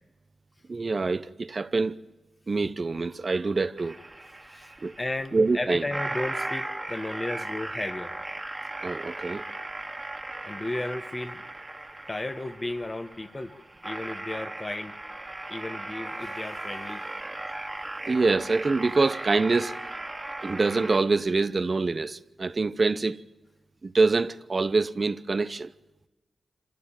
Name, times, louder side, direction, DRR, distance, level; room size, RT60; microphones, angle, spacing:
voice 1, 0.7-2.0 2.5-4.0 4.8-4.9 5.3-5.9 8.8-9.4 18.1-19.7 20.4-23.2 23.8-25.7, right 3 dB, 50° right, 0.8 m, -25 dB
sound 1, 3.8-21.0, right 2 dB, 25° right, 2.1 m, -37 dB
voice 2, 4.4-8.1 10.4-11.4 12.1-13.5 13.8-15.0 15.5-17.1, left 2 dB, 30° left, 1.6 m, -34 dB
25.5 x 15.5 x 9.0 m
cardioid pair, 50°, 0 cm